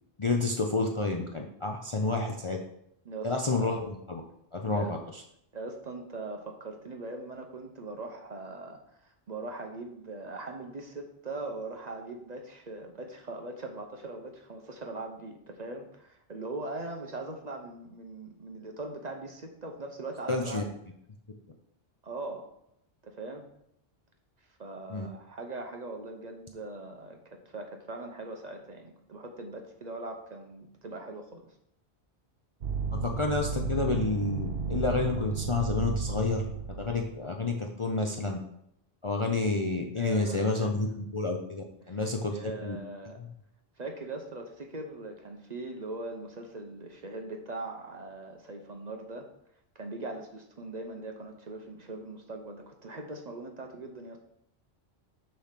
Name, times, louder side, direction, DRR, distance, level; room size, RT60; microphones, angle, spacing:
voice 1, 0.2-2.6 3.2-4.2 4.5-5.0 20.3-20.6 24.9-25.1 32.9-36.4 36.8-38.4 39.0-42.8 43.2-43.3, left 3 dB, 35° left, 2 dB, 0.5 m, -29 dB
voice 2, 3.0-3.7 4.7-4.9 5.5-20.7 22.0-22.5 23.0-23.4 24.6-31.4 40.0-40.7 41.8-42.0 42.3-43.2 43.8-49.3 49.7-54.2, right 2 dB, 45° right, 3 dB, 0.8 m, -41 dB
sound 1, 32.6-37.1, right 5 dB, 75° right, 1.3 m, -33 dB
6.7 x 3.3 x 5.8 m, 0.75 s
omnidirectional pair, 1.1 m